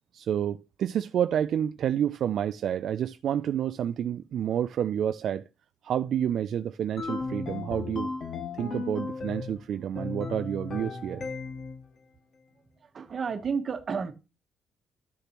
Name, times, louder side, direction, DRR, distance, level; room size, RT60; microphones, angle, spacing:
voice 1, 0.1-5.4 5.8-8.1 8.5-11.3, right 9 dB, 60° right, 0.3 m, -29 dB
sound 1, 7.0-9.6 9.9-11.8, left 4 dB, 50° left, 1.7 m, -35 dB
voice 2, 12.8-14.1, right 5 dB, 40° right, 1.2 m, -31 dB
13.0 x 6.7 x 3.0 m
cardioid pair, 115°, 0 cm